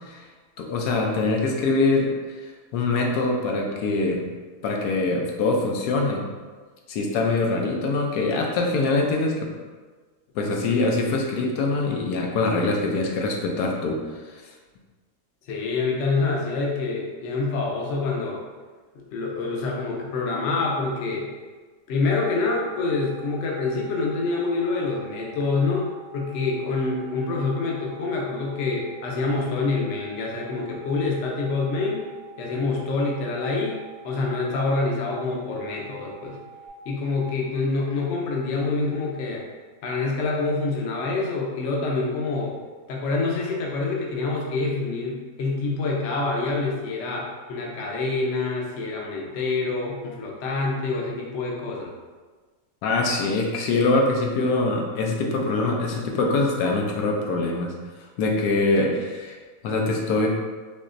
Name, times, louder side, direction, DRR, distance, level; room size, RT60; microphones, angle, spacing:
voice 1, 0.6-2.1 2.7-4.3 4.6-6.3 6.9-9.3 10.3-14.0 52.8-57.7 58.2-59.4 59.6-60.4, left 3 dB, 90° left, 0 dB, 1.2 m, -23 dB
voice 2, 15.5-18.4 18.9-21.3 21.9-32.1 32.4-33.8 34.0-36.4 36.9-39.4 39.8-42.6 42.9-51.9, left 3 dB, 60° left, -2 dB, 0.8 m, -26 dB
sound 1, 22.1-36.7, right 8 dB, 40° left, 0.4 m, -47 dB
4.1 x 2.9 x 2.5 m, 1.4 s
omnidirectional pair, 1.6 m